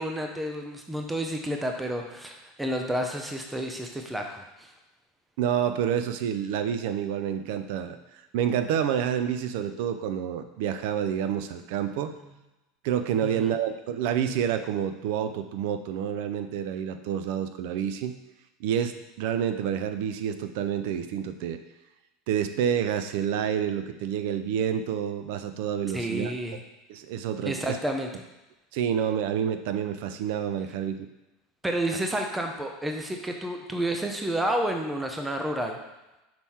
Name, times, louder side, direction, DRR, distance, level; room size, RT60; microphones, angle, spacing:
voice 1, 0.0-4.7 13.2-13.5 25.9-26.6 27.4-28.1 31.6-35.8, right 1 dB, 5° right, 3 dB, 0.6 m, -30 dB
voice 2, 5.4-8.0 8.3-12.1 12.8-18.1 18.6-21.6 22.3-26.3 26.9-27.8 28.7-31.1, right 9 dB, 70° right, 9 dB, 0.5 m, -28 dB
6.0 x 3.7 x 4.3 m, 1.0 s
supercardioid pair, 120°, 0 cm